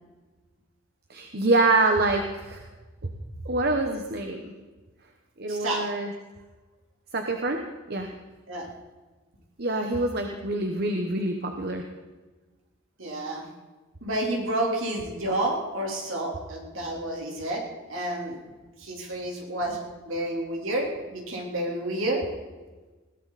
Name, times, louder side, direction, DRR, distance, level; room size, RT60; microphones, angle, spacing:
voice 1, 1.1-2.6 3.4-4.5 5.4-6.1 7.1-7.6 7.9-8.1 9.6-11.8, right 2 dB, 50° right, 4 dB, 1.2 m, -25 dB
voice 2, 5.5-5.9 8.5-8.7 13.0-13.4 14.0-17.6 17.9-18.4 18.8-22.2, right 1 dB, 65° right, -1 dB, 3.8 m, -30 dB
21.0 x 16.0 x 4.2 m, 1.2 s
head